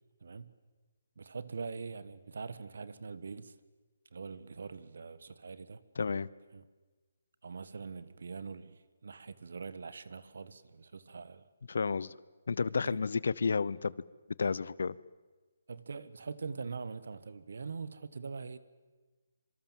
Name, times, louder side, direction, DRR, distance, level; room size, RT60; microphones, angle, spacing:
voice 1, 0.2-0.5 1.2-3.5 4.1-5.8 6.5-6.6 7.4-11.4 12.8-13.0 14.4-14.6 15.7-18.6, right 4 dB, 70° right, 1.6 m, -43 dB
voice 2, 6.0-6.3 11.7-12.1 12.5-13.9 14.4-14.9, left 5 dB, 70° left, 0.8 m, -31 dB
26.0 x 24.5 x 7.5 m
hypercardioid pair, 165°, 0 cm